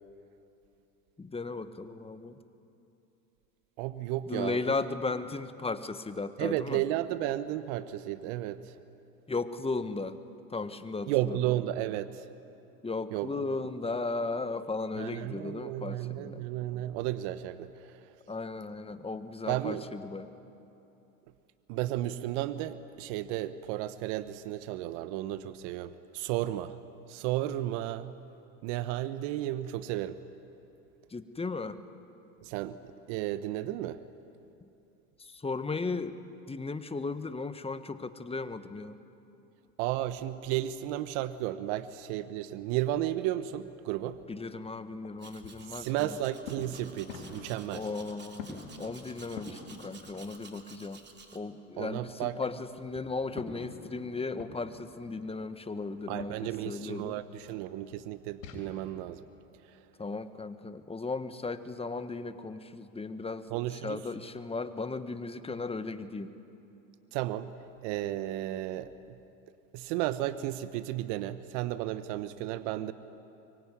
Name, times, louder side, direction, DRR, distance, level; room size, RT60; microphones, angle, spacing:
voice 1, 1.2-2.4 4.3-6.8 9.3-10.2 10.5-11.4 12.8-16.4 18.3-20.3 31.1-31.8 35.2-36.1 36.5-39.0 44.3-46.2 47.7-51.0 51.3-57.2 58.5-58.7 60.0-66.3 72.8-72.9, left 3 dB, 15° left, 11 dB, 1.5 m, -36 dB
voice 2, 3.8-4.7 6.4-8.7 11.1-12.2 13.1-13.4 15.0-18.0 19.5-19.9 21.7-26.7 27.1-28.2 28.6-30.2 32.4-32.8 33.1-34.0 39.8-44.2 45.7-47.9 51.8-52.4 56.1-59.2 63.5-64.0 67.1-67.5 67.8-69.2 69.7-72.9, right 14 dB, 65° right, 13 dB, 1.1 m, -33 dB
sound 1, 44.0-50.8 51.1-58.6, left 4 dB, 80° left, 5.0 m, -49 dB
Domestic sounds home sounds, 45.2-51.4, right 4 dB, 25° right, 3.0 m, -53 dB
24.0 x 23.5 x 9.7 m, 2.8 s
hypercardioid pair, 90°, 39 cm